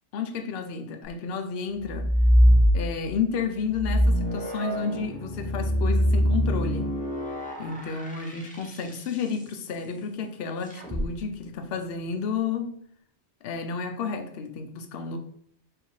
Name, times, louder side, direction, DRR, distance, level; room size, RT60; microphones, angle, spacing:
voice 1, 0.1-2.1 2.7-6.9 7.6-12.8 13.4-15.2, left 5 dB, 65° left, 0.7 m, -31 dB
sound 1, 1.8-3.2 3.7-9.2 10.7-11.0, equal, 10° left, 0.5 m, -23 dB
4.7 x 2.7 x 3.1 m
omnidirectional pair, 1.2 m